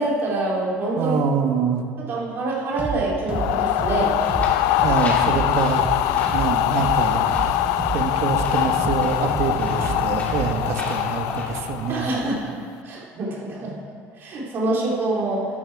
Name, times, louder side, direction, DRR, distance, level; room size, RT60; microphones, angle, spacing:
voice 1, 0.0-1.2 2.1-4.2 11.9-12.5 12.8-13.7 14.2-15.5, right 2 dB, 45° right, -4 dB, 3.4 m, -25 dB
voice 2, 1.0-1.8 4.8-5.8 6.3-7.3 7.9-12.1, right 6 dB, 60° right, 4 dB, 1.3 m, -25 dB
sound 1, 2.8-3.0 3.3-7.0 7.3-10.7, right 5 dB, 25° right, 1.5 m, -30 dB
sound 2, 3.3-12.4, left 14 dB, 80° left, 0.4 m, -23 dB
sound 3, 4.0-12.4, left 1 dB, 25° left, 2.8 m, -37 dB
12.0 x 11.0 x 4.8 m, 2.1 s
cardioid pair, 140°, 5 cm